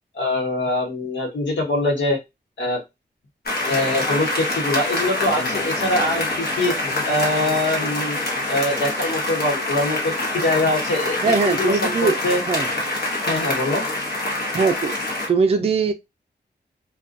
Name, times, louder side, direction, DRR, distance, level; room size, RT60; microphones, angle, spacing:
voice 1, 0.1-2.2 2.6-2.8 3.6-6.7 7.0-8.2 8.5-12.4 13.2-13.8, left 2 dB, 90° left, 1.0 m, -23 dB
sound 1, 3.5-15.3, left 2 dB, 60° left, 0.9 m, -25 dB
voice 2, 11.2-12.2 12.5-12.7 14.5-14.9 15.3-15.9, right 4 dB, 35° right, 0.4 m, -20 dB
2.4 x 2.2 x 2.5 m
wide cardioid pair, 70°, 18 cm